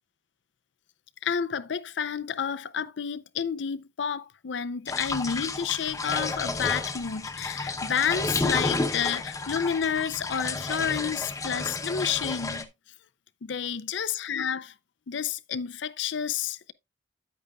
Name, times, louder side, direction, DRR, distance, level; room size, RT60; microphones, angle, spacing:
voice 1, 1.2-12.7 13.4-14.7 15.1-16.7, left 7 dB, 75° left, 0.5 m, -30 dB
sound 1, 4.9-12.6, left 3 dB, 20° left, 0.7 m, -31 dB
9.4 x 8.6 x 2.3 m
head